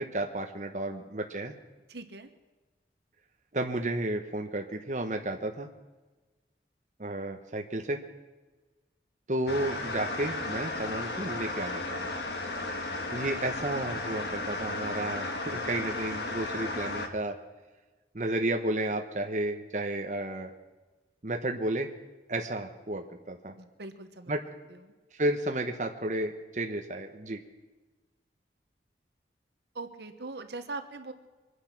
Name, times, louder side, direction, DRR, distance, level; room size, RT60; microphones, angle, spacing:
voice 1, 0.0-1.5 3.5-5.7 7.0-8.0 9.3-12.0 13.1-17.3 18.1-20.5 21.2-21.9 22.3-23.5 24.3-24.4 25.2-27.4, right 1 dB, 45° right, 3 dB, 1.0 m, -32 dB
voice 2, 1.9-2.3 23.6-24.3 24.7-24.9 29.7-31.1, right 3 dB, 70° right, 8 dB, 1.2 m, -41 dB
sound 1, 9.5-17.1, left 2 dB, 65° left, 1.6 m, -34 dB
24.0 x 9.7 x 5.9 m, 1.2 s
head